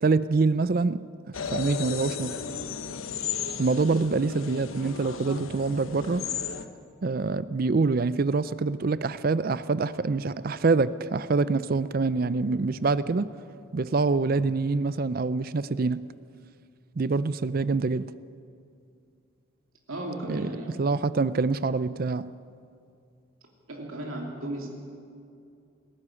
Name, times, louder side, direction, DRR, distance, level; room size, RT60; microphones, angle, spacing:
voice 1, 0.0-1.0 1.5-2.4 3.6-6.2 7.0-13.3 13.7-16.0 17.0-18.1 20.3-20.5 20.8-22.3, right 3 dB, 45° right, 16 dB, 0.4 m, -25 dB
sound 1, 1.3-6.6, left 6 dB, 85° left, 1.1 m, -34 dB
voice 2, 19.9-20.8 23.7-24.8, right 1 dB, 90° right, -1 dB, 3.0 m, -35 dB
19.0 x 14.0 x 9.8 m, 2.5 s
head